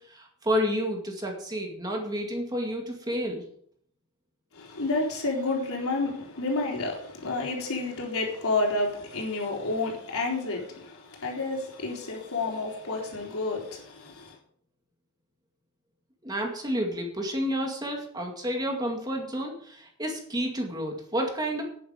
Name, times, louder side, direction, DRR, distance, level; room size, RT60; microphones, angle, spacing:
voice 1, 0.1-3.4 16.2-21.6, equal, 20° right, 2.1 m, -30 dB
voice 2, 4.5-14.4, left 3 dB, 80° left, 3.9 m, -30 dB
10.5 x 9.8 x 5.2 m
head